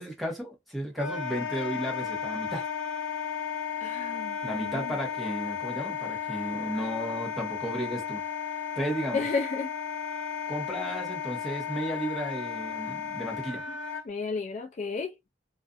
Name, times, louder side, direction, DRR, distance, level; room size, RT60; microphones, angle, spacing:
voice 1, 0.0-2.6 4.4-8.2 8.8-9.2 10.5-13.6, right 1 dB, ahead, 1.0 m, -34 dB
Wind instrument woodwind instrument, 1.0-14.0, left 7 dB, 90° left, 0.8 m, -34 dB
voice 2, 3.8-4.9 9.1-9.7 14.0-15.1, left 4 dB, 40° left, 0.3 m, -32 dB
2.4 x 2.4 x 2.4 m
head